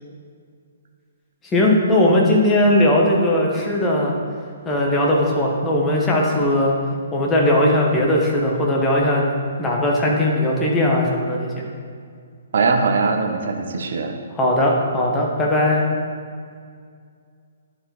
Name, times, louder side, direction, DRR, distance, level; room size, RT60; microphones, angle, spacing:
voice 1, 1.5-4.1 4.6-6.8 7.1-9.3 9.6-11.5 14.3-15.9, left 1 dB, 15° left, -2 dB, 1.4 m, -18 dB
voice 2, 12.5-14.1, right 4 dB, 55° right, 4 dB, 0.9 m, -20 dB
11.0 x 4.8 x 4.5 m, 2.1 s
figure-of-eight pair, 125°, 0 cm